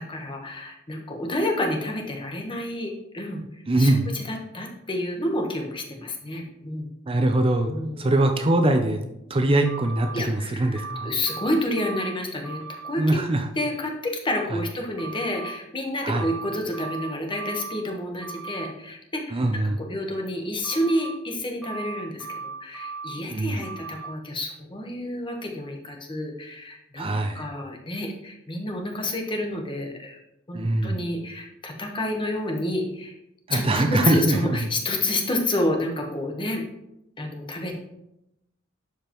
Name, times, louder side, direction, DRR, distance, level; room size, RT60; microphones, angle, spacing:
voice 1, 0.0-3.4 3.8-6.9 7.7-8.2 10.1-13.0 13.5-19.4 19.8-30.2 30.5-33.1 33.5-36.6 37.2-37.8, left 1 dB, 25° left, 2 dB, 1.1 m, -29 dB
voice 2, 3.7-4.0 7.1-7.7 8.0-9.0 9.3-11.1 13.0-13.5 14.5-14.6 16.0-16.2 19.3-19.8 23.3-23.6 27.0-27.5 30.5-31.0 33.5-34.7, right 1 dB, 25° right, 5 dB, 0.5 m, -22 dB
sound 1, 9.6-10.1 10.7-12.1 12.4-12.9 15.0-15.5 16.1-17.8 18.2-18.7 20.6-21.1 21.6-23.1 23.6-24.1, right 4 dB, ahead, 1.8 m, -37 dB
11.5 x 5.0 x 3.0 m, 0.85 s
head